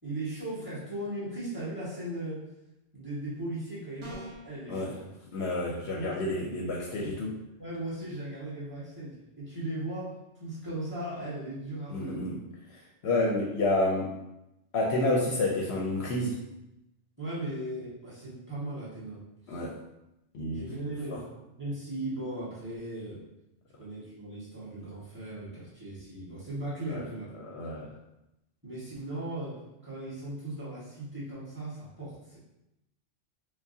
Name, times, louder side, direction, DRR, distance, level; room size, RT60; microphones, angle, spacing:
voice 1, 0.0-2.5 2.9-5.1 5.9-6.3 7.0-7.2 7.6-12.3 17.2-19.6 20.5-21.3 21.6-23.3 23.8-27.3 28.6-32.4, right 1 dB, 10° right, -9 dB, 1.4 m, -38 dB
sound 1, 4.0-4.5, equal, 25° right, 1.0 m, -42 dB
voice 2, 5.3-7.3 11.9-12.4 12.7-14.1 14.7-16.4 19.5-19.8 20.3-20.7 21.1-21.2 26.9-27.0 27.4-27.9, left 2 dB, 65° left, -2 dB, 0.8 m, -29 dB
4.6 x 2.2 x 2.7 m, 0.90 s
omnidirectional pair, 1.3 m